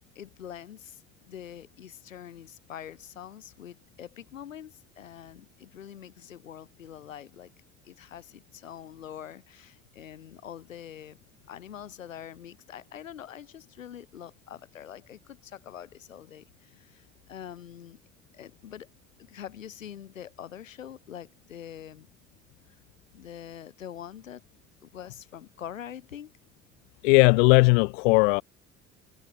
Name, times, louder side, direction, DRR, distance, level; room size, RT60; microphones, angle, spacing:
voice 1, 0.1-7.5 7.8-11.2 11.5-18.0 18.3-18.9 19.2-22.1 23.1-24.4 24.8-26.3, left 10 dB, 85° left, 1.5 m, -44 dB
voice 2, 27.0-28.4, left 29 dB, 70° left, 0.7 m, -18 dB
figure-of-eight pair, 50°, 38 cm